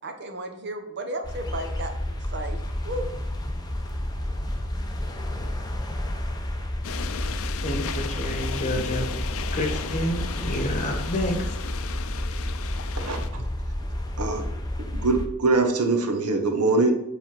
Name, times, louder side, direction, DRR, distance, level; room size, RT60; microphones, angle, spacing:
voice 1, 0.0-3.1, right 1 dB, 50° right, 5 dB, 0.9 m, -34 dB
sound 1, 1.2-15.3, left 1 dB, 15° left, 0.7 m, -30 dB
sound 2, 6.8-13.3, left 7 dB, 65° left, 0.5 m, -36 dB
voice 2, 7.6-9.1 9.6-11.5, left 1 dB, 35° left, 3 dB, 1.3 m, -29 dB
voice 3, 13.0-13.4 14.2-14.4 14.9-16.9, right 3 dB, 90° right, 4 dB, 1.0 m, -23 dB
7.3 x 3.5 x 5.9 m, 0.81 s
head